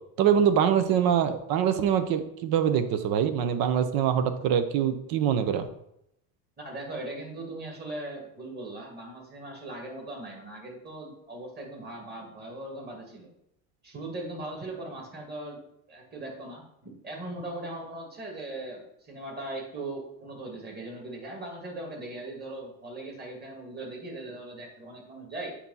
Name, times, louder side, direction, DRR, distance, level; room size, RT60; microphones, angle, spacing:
voice 1, 0.2-5.7, right 8 dB, 60° right, 10 dB, 0.8 m, -24 dB
voice 2, 6.6-13.3 13.8-15.6 15.9-25.6, right 2 dB, 25° right, 0 dB, 2.1 m, -39 dB
8.5 x 2.9 x 5.4 m, 0.78 s
cardioid pair, 125°, 41 cm